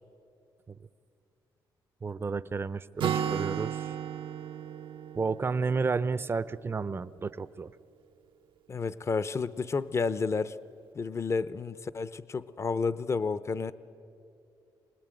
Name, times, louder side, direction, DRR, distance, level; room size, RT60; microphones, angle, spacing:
voice 1, 2.0-3.8 5.1-7.7, right 4 dB, 25° right, 16 dB, 0.5 m, -31 dB
Acoustic guitar, 3.0-6.7, right 9 dB, 75° right, 0.7 m, -34 dB
voice 2, 8.7-10.6 10.9-13.7, left 4 dB, 35° left, 16 dB, 0.6 m, -31 dB
25.0 x 19.5 x 9.1 m, 2.6 s
cardioid pair, 110°, 9 cm